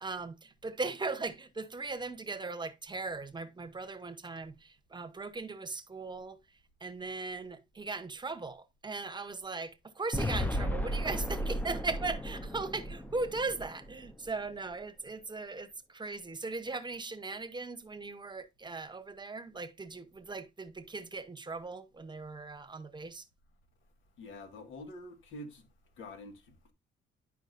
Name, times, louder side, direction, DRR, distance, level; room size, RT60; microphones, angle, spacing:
voice 1, 0.0-23.3, right 3 dB, 20° right, 1.0 m, -39 dB
sound 1, 10.1-14.3, equal, 10° left, 0.7 m, -35 dB
voice 2, 24.2-25.6 26.0-26.7, left 1 dB, 80° left, 1.7 m, -46 dB
10.5 x 5.0 x 2.5 m
cardioid pair, 90°, 20 cm